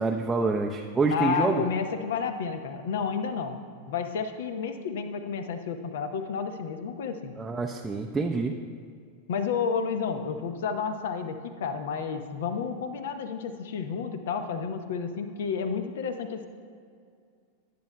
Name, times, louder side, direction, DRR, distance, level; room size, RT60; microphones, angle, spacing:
voice 1, 0.0-1.6 7.4-8.5, right 3 dB, 10° right, 1 dB, 0.5 m, -26 dB
voice 2, 1.1-3.6 3.9-7.4 9.3-16.5, left 6 dB, 60° left, 8 dB, 0.8 m, -31 dB
19.0 x 9.2 x 2.2 m, 2.2 s
figure-of-eight pair, 90°, 0 cm